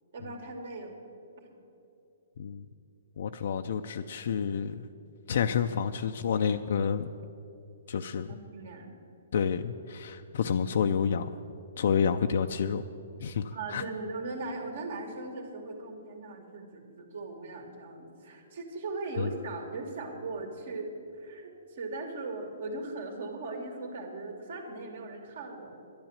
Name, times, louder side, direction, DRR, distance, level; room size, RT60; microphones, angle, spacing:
voice 1, 0.1-1.0 5.3-5.5 8.2-8.9 13.5-25.8, right 3 dB, 65° right, 4 dB, 2.5 m, -39 dB
voice 2, 3.2-4.8 5.3-7.1 7.9-8.3 9.3-11.4 11.8-12.8 13.2-13.8 19.2-19.3, left 7 dB, 65° left, 6 dB, 0.5 m, -29 dB
11.5 x 10.5 x 7.3 m, 2.7 s
hypercardioid pair, 150°, 0 cm